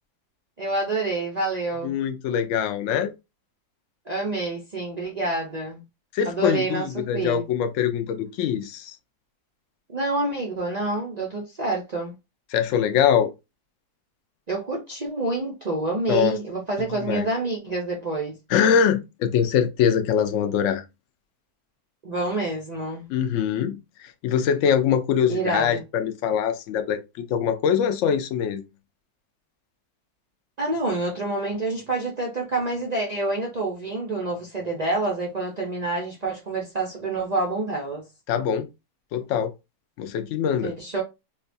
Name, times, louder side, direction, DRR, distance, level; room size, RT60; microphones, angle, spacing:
voice 1, 0.6-1.9 4.1-5.8 6.3-7.4 9.9-12.1 14.5-18.4 22.0-23.0 25.3-25.8 30.6-38.0 40.6-41.0, right 2 dB, 65° right, 0.4 m, -27 dB
voice 2, 1.8-3.1 6.1-9.0 12.5-13.3 16.1-16.4 17.0-17.3 18.5-20.8 23.1-27.0 27.3-28.6 38.3-38.7 39.1-39.5 40.0-40.7, left 8 dB, 65° left, 0.8 m, -23 dB
4.6 x 2.2 x 2.5 m
omnidirectional pair, 1.7 m